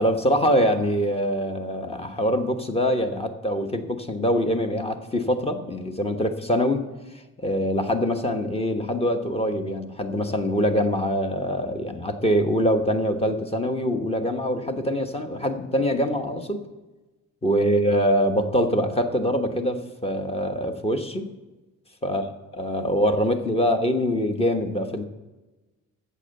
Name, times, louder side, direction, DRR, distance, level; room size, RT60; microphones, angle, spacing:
voice 1, 0.0-6.8 7.4-16.6 17.4-21.3 22.0-22.2 22.6-25.0, equal, 20° left, 6 dB, 1.1 m, -24 dB
8.4 x 6.8 x 7.7 m, 1.2 s
cardioid pair, 90°, 30 cm